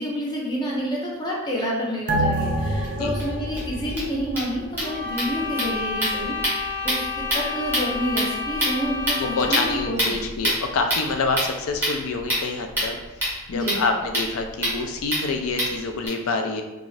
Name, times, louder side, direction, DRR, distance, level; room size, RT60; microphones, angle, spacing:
voice 1, 0.0-10.2 13.5-13.8, equal, 20° left, -4 dB, 0.6 m, -29 dB
sound 1, 2.1-5.0 5.3-5.4, right 1 dB, 40° right, 0.4 m, -27 dB
sound 2, 2.8-2.9 3.2-3.3 3.6-3.7 3.9-16.1, equal, 10° right, 1.2 m, -28 dB
sound 3, 4.8-10.1, left 5 dB, 45° left, 1.0 m, -31 dB
voice 2, 9.2-13.0 13.5-16.6, left 3 dB, 70° left, 5 dB, 0.4 m, -27 dB
2.5 x 2.4 x 3.1 m, 1.1 s
head